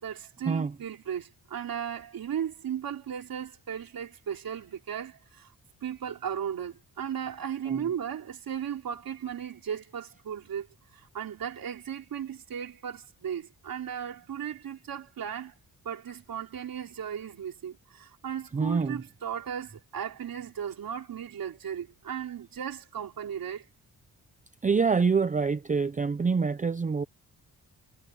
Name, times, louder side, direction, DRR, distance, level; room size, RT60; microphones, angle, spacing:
voice 1, 0.0-5.5 5.8-10.7 10.9-15.5 15.8-23.7, right 8 dB, 65° right, 3.4 m, -36 dB
voice 2, 18.5-19.0 24.6-27.0, right 5 dB, 20° right, 0.5 m, -26 dB
wide cardioid pair, 175°, 37 cm